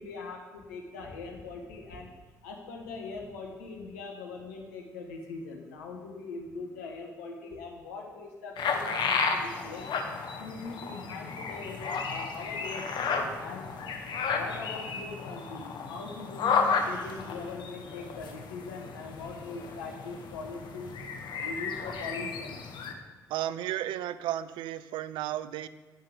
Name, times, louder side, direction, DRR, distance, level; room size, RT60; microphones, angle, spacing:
voice 1, 0.0-2.1 2.4-9.9 10.4-13.7 14.3-20.9 21.4-22.6, left 3 dB, 80° left, 1 dB, 1.3 m, -41 dB
sound 1, 8.6-22.9, left 5 dB, 60° left, 1.0 m, -33 dB
voice 2, 23.3-25.7, right 12 dB, 65° right, 14 dB, 0.4 m, -33 dB
10.0 x 5.8 x 5.0 m, 1.3 s
figure-of-eight pair, 40°, 9 cm